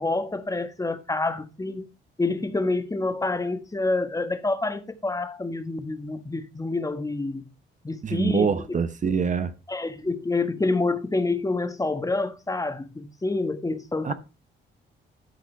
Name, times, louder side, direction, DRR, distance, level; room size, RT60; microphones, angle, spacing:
voice 1, 0.0-1.9 2.2-7.5 7.8-8.5 9.7-14.1, left 3 dB, 15° left, 1.4 m, -27 dB
voice 2, 8.0-9.5 14.0-14.1, right 6 dB, 40° right, 0.9 m, -25 dB
12.5 x 5.0 x 4.5 m
cardioid pair, 90°, 20 cm